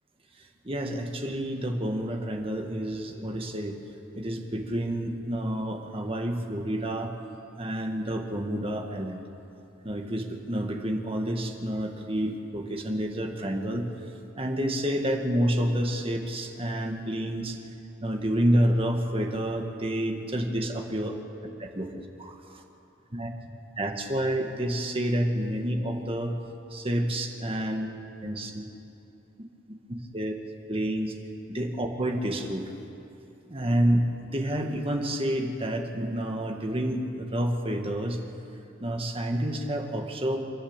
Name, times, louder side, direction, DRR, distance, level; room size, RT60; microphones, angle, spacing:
voice 1, 0.4-3.8 4.1-7.1 7.6-9.2 9.8-13.9 14.4-17.6 18.0-21.2 21.6-22.6 23.1-23.3 23.8-26.4 26.7-27.9 28.2-28.7 30.1-30.3 30.7-31.1 31.5-32.7 33.5-34.1 34.3-38.2 38.8-40.4, right 1 dB, 30° right, 3 dB, 1.8 m, -29 dB
28.5 x 11.5 x 8.9 m, 2.8 s
head